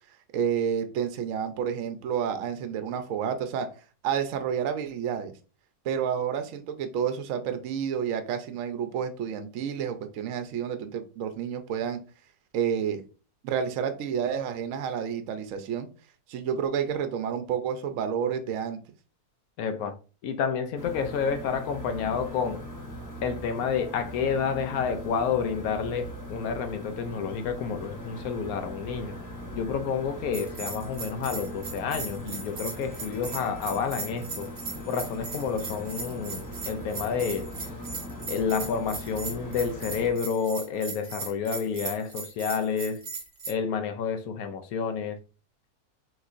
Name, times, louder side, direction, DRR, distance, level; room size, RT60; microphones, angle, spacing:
voice 1, 0.3-3.7 4.0-5.3 5.8-12.0 12.5-13.0 13.4-15.9 16.3-18.8, right 8 dB, 65° right, 0.9 m, -30 dB
voice 2, 19.6-19.9 20.2-22.6 23.2-29.2 29.5-34.5 34.9-37.5 38.3-43.0 43.5-45.2, left 6 dB, 75° left, 1.0 m, -29 dB
sound 1, 20.8-40.1, equal, 20° left, 0.6 m, -40 dB
Bell, 30.3-43.5, right 4 dB, 50° right, 0.6 m, -38 dB
6.1 x 3.0 x 2.5 m
omnidirectional pair, 1.6 m